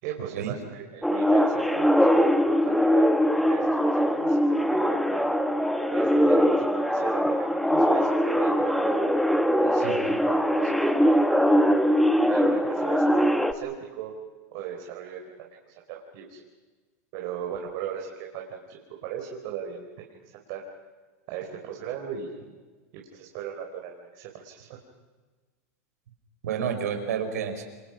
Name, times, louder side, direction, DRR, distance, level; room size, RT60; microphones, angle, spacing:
voice 1, 0.0-3.1 3.5-5.3 5.9-9.0 9.6-11.7 12.2-14.1 14.5-15.2 15.7-16.4 17.1-20.6 21.3-22.5 23.1-24.8, right 8 dB, 60° right, 0 dB, 4.6 m, -38 dB
sound 1, 1.0-13.5, equal, ahead, 1.6 m, -22 dB
voice 2, 26.4-27.6, right 7 dB, 85° right, 6 dB, 5.0 m, -30 dB
30.0 x 25.5 x 6.1 m, 1.3 s
hypercardioid pair, 115°, 8 cm